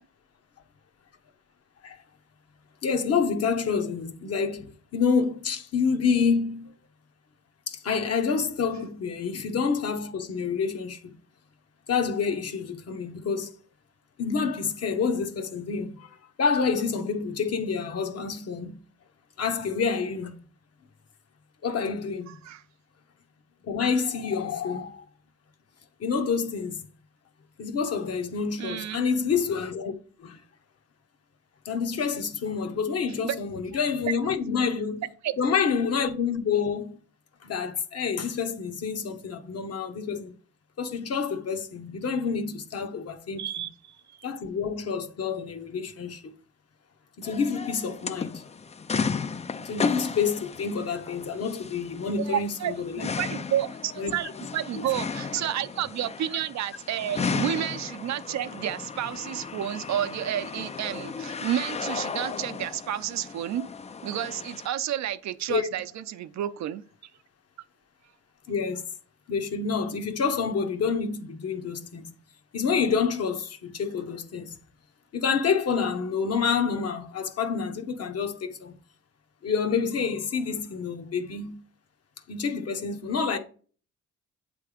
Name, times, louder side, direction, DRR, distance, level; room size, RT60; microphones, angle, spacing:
voice 1, 2.8-6.8 7.7-11.1 11.9-13.5 14.2-18.8 19.4-20.4 21.6-22.4 23.6-25.1 26.0-26.9 27.6-29.9 30.2-30.4 31.6-35.0 35.4-37.0 37.4-40.3 40.8-43.4 44.2-46.3 47.2-48.4 49.6-53.1 54.0-54.1 54.7-54.9 65.5-65.7 68.5-68.9 69.3-72.1 72.5-74.6 75.1-78.7 79.4-81.6 82.3-83.4, left 5 dB, 55° left, 1.1 m, -28 dB
voice 2, 28.6-29.0 33.2-33.4 35.2-35.3 43.4-44.0 52.2-63.7 64.0-66.8, right 11 dB, 65° right, 0.6 m, -30 dB
sound 1, 47.2-64.7, left 5 dB, 20° left, 0.4 m, -35 dB
8.2 x 3.4 x 5.0 m
cardioid pair, 90°, 30 cm